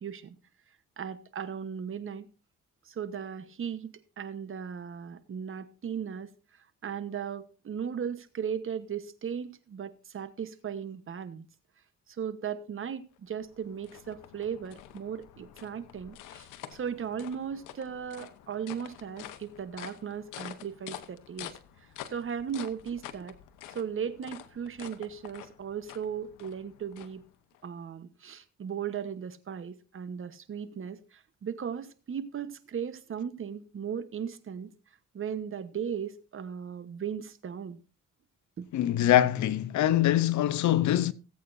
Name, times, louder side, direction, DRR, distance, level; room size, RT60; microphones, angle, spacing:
voice 1, 0.0-0.4 1.0-2.3 2.8-6.3 6.8-11.5 12.1-21.5 22.1-23.4 23.7-27.2 27.6-34.7 35.1-37.8 38.6-38.7, right 7 dB, 45° right, 1.1 m, -37 dB
sound 1, 13.2-27.6, left 11 dB, 90° left, 1.0 m, -48 dB
voice 2, 38.7-41.1, left 12 dB, 70° left, 0.7 m, -24 dB
18.5 x 8.4 x 2.6 m
cardioid pair, 90°, 30 cm